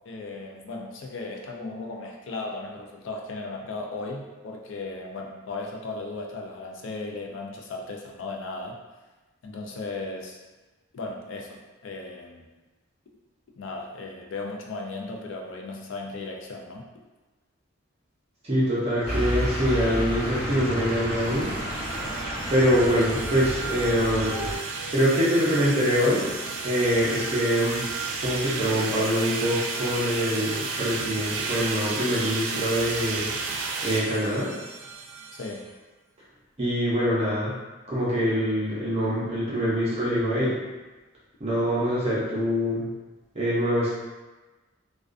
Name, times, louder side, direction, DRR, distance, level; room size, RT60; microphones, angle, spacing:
voice 1, 0.1-8.8 9.4-10.4 10.9-12.5 13.5-16.9 35.3-35.7, left 3 dB, 70° left, 1 dB, 0.4 m, -36 dB
voice 2, 18.4-21.6 22.5-24.3 24.9-26.2 26.6-27.8 28.2-33.3 33.8-34.5 36.6-37.5 37.9-40.6 41.4-42.9 43.3-43.9, equal, 30° right, -8 dB, 0.5 m, -24 dB
sound 1, 18.9-35.6, right 4 dB, 90° right, 0.3 m, -33 dB
sound 2, 19.0-24.6, equal, 20° left, 0.9 m, -31 dB
2.4 x 2.2 x 2.4 m, 1.2 s
head